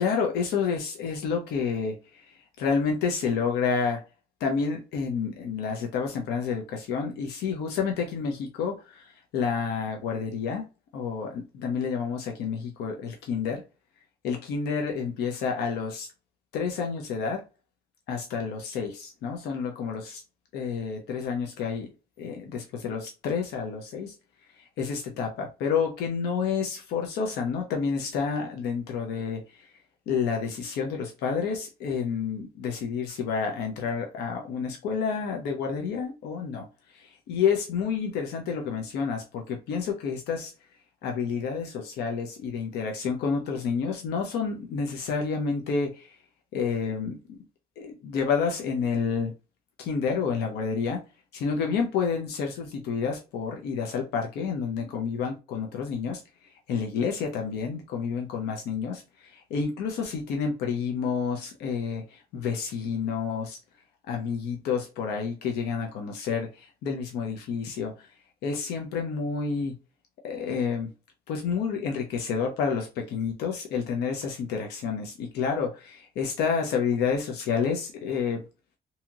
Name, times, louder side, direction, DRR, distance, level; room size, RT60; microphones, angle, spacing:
voice 1, 0.0-4.0 4.4-10.6 10.9-13.6 14.2-16.1 16.5-17.4 18.1-20.2 20.5-21.9 22.2-24.1 24.5-29.8 30.1-40.5 41.0-46.2 46.5-47.4 47.8-49.3 49.8-51.0 51.3-63.6 64.1-69.7 70.2-70.9 71.3-78.4, left 6 dB, 75° left, 0.7 m, -29 dB
2.8 x 2.8 x 2.4 m
cardioid pair, 110°, 17 cm